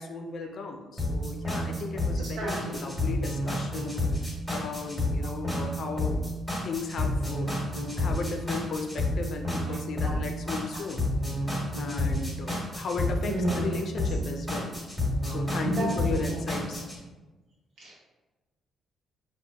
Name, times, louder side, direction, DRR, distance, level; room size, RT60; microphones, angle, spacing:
voice 1, 0.0-4.0 4.5-6.2 6.6-7.5 8.0-11.1 11.8-14.8 15.2-16.9, left 4 dB, 60° left, 4 dB, 0.4 m, -35 dB
sound 1, 1.0-17.0, left 1 dB, ahead, 1.2 m, -30 dB
voice 2, 2.4-2.8 9.7-9.8 10.0-10.2 13.2-13.6 15.2-15.3 15.6-16.2 17.8-18.0, right 1 dB, 70° right, -6 dB, 1.2 m, -31 dB
3.9 x 2.4 x 2.3 m, 1.2 s
cardioid pair, 90°, 0 cm